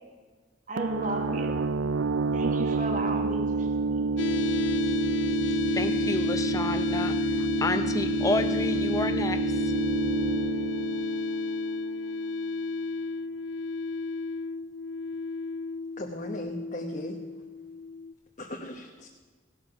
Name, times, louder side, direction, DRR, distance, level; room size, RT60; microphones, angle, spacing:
voice 1, 0.7-1.6 2.3-4.1, right 2 dB, 40° right, 3 dB, 1.7 m, -34 dB
sound 1, 0.8-12.3, right 3 dB, 75° right, 0.5 m, -29 dB
sound 2, 4.2-18.1, left 3 dB, 70° left, 0.4 m, -32 dB
voice 2, 5.7-9.4, left 2 dB, 15° left, 9 dB, 0.6 m, -30 dB
voice 3, 16.0-17.2 18.4-19.1, equal, 40° left, 0 dB, 1.2 m, -37 dB
17.0 x 12.0 x 6.0 m, 1.4 s
head